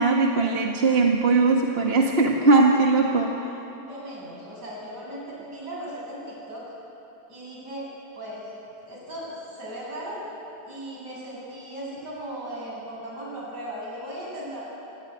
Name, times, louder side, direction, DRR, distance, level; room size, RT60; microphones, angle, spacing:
voice 1, 0.0-3.3, right 3 dB, 35° right, 1 dB, 1.8 m, -20 dB
voice 2, 3.9-6.6 7.3-7.9 8.1-8.5 8.9-10.2 10.7-14.6, right 1 dB, 60° right, -5 dB, 8.9 m, -37 dB
26.5 x 18.5 x 10.0 m, 2.9 s
omnidirectional pair, 2.0 m